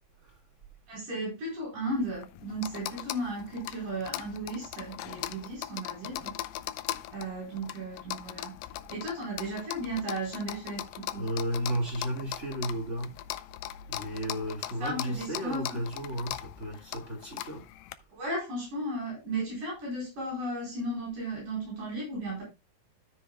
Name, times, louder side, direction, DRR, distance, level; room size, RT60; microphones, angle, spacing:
voice 1, 0.9-6.4 7.1-8.6 8.9-11.3 14.8-15.8 16.7-16.8 18.1-22.4, right 1 dB, 50° right, 5.8 m, -35 dB
sound 1, 1.9-17.9, left 14 dB, 85° left, 2.0 m, -40 dB
voice 2, 11.1-13.1 13.9-17.6, right 1 dB, 30° right, 1.3 m, -33 dB
13.5 x 7.2 x 2.2 m
omnidirectional pair, 4.8 m